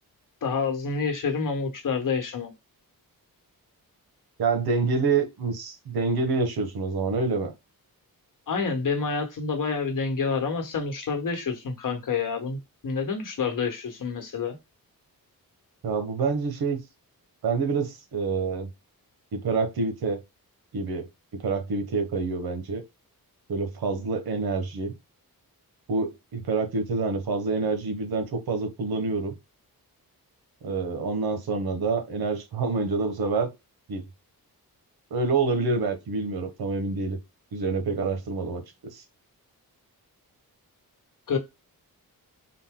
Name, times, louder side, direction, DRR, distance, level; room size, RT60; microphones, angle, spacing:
voice 1, 0.4-2.5 8.5-14.6 41.3-41.4, left 5 dB, 60° left, 1.2 m, -28 dB
voice 2, 4.4-7.5 15.8-16.8 17.4-18.7 19.3-20.2 20.7-21.1 21.4-22.8 23.5-24.9 25.9-29.4 30.6-33.5 33.9-34.0 35.1-37.2 37.5-38.6 38.9-39.0, right 4 dB, 80° right, 1.1 m, -27 dB
3.9 x 2.2 x 3.6 m
wide cardioid pair, 125°, 37 cm